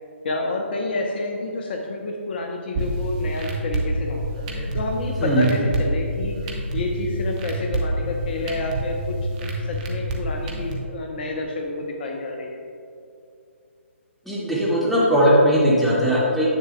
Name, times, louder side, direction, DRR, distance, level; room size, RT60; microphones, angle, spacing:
voice 1, 0.2-12.6, left 2 dB, 50° left, 1 dB, 0.8 m, -29 dB
sound 1, 2.7-10.7, right 1 dB, 35° right, 1.1 m, -27 dB
voice 2, 14.3-16.6, equal, ahead, -9 dB, 1.9 m, -19 dB
10.0 x 7.9 x 2.2 m, 2.5 s
figure-of-eight pair, 135°, 7 cm